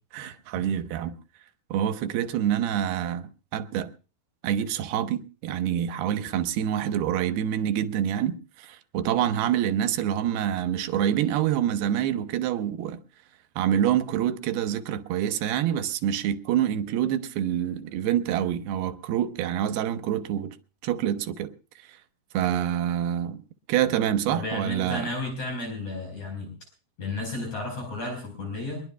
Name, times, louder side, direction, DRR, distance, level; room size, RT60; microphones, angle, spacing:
voice 1, 0.1-1.2 1.7-3.9 4.4-13.0 13.6-20.6 20.8-21.5 22.3-23.4 23.7-25.1, right 10 dB, 90° right, 3.0 m, -26 dB
voice 2, 24.3-26.5 27.0-28.8, left 2 dB, 50° left, 6.0 m, -33 dB
22.5 x 21.5 x 2.3 m
omnidirectional pair, 4.4 m